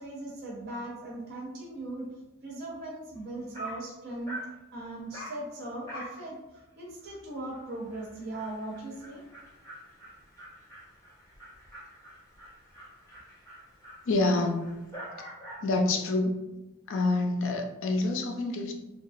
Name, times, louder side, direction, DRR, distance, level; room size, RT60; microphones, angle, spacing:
voice 1, 0.0-2.1 2.4-4.4 4.7-6.4 6.8-9.2, right 2 dB, 45° right, -4 dB, 0.6 m, -39 dB
Dog, 3.2-3.3 3.5-3.9 4.3-4.6 5.1-5.4 5.9-6.2 6.5-6.6 7.0-7.1 7.5-7.6 7.9-15.7, right 1 dB, 15° left, 0.6 m, -45 dB
voice 2, 14.1-14.7 15.6-16.4 16.9-18.7, left 2 dB, 60° left, 3 dB, 0.4 m, -27 dB
2.8 x 2.3 x 2.5 m, 1.0 s
head